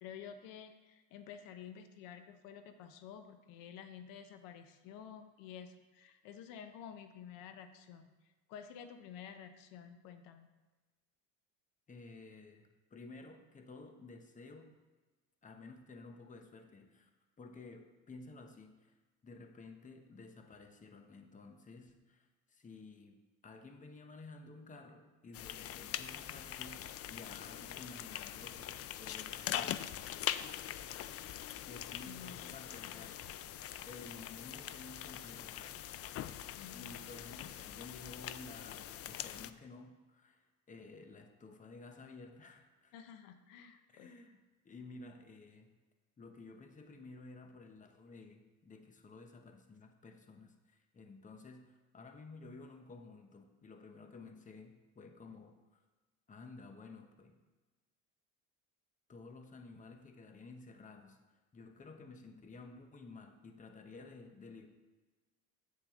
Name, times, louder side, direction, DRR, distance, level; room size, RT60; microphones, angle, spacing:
voice 1, 0.0-10.5 32.1-32.5 32.8-33.1 36.5-36.9 42.9-44.1, left 8 dB, 85° left, 8 dB, 0.8 m, -51 dB
voice 2, 11.9-14.7 15.4-17.1 17.4-18.9 19.2-29.8 31.7-33.6 33.9-35.9 36.7-42.9 43.9-44.4 44.6-45.7 46.2-55.8 56.3-57.4 59.1-64.7, left 3 dB, 25° left, 5 dB, 0.9 m, -53 dB
sound 1, 25.3-39.5, left 11 dB, 45° left, 0.4 m, -43 dB
8.6 x 7.5 x 3.7 m, 1.2 s
cardioid pair, 110°, 33 cm